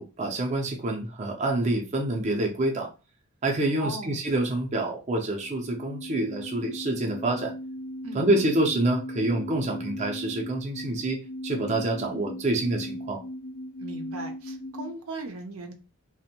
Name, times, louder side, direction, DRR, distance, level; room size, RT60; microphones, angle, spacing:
voice 1, 0.0-2.9 3.4-7.5 8.1-13.2, right 2 dB, 35° right, 0.5 m, -27 dB
voice 2, 3.8-4.2 8.0-8.3 13.8-15.7, right 2 dB, 80° right, 0.6 m, -38 dB
sound 1, 5.3-14.9, equal, 40° left, 0.4 m, -38 dB
2.5 x 2.1 x 2.8 m
head